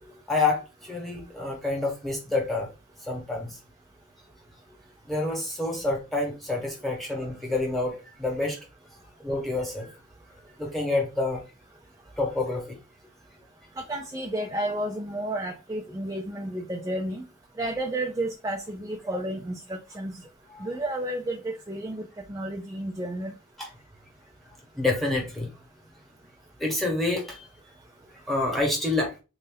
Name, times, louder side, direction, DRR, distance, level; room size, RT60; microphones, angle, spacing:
voice 1, 0.3-2.7 3.1-3.5 5.1-8.6 9.2-9.9 10.6-11.4 12.2-12.8 20.5-20.7 23.6-23.7 24.7-25.5 26.6-27.5 28.3-29.1, left 2 dB, ahead, 1.3 m, -28 dB
voice 2, 13.9-17.2 17.6-20.1 20.6-23.3, right 1 dB, 15° right, 0.5 m, -31 dB
3.8 x 2.7 x 3.9 m
head